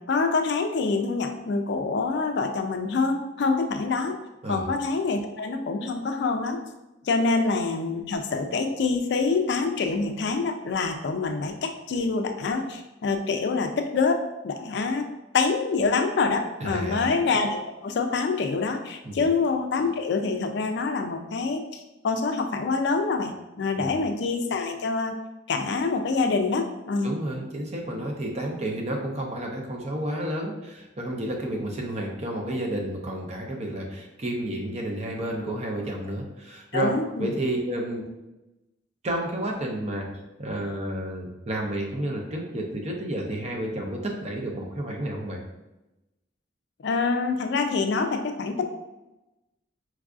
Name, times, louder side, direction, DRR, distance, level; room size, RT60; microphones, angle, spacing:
voice 1, 0.1-4.1 4.5-6.6 7.0-15.1 15.3-25.2 25.5-27.1 36.7-37.4 46.8-48.7, left 4 dB, 65° left, 6 dB, 0.3 m, -26 dB
voice 2, 16.6-17.1 19.0-19.2 23.8-24.0 27.0-36.9 37.2-38.1 39.0-40.1 40.4-45.4, right 1 dB, 35° right, 0 dB, 0.5 m, -31 dB
4.6 x 2.4 x 2.4 m, 0.99 s
head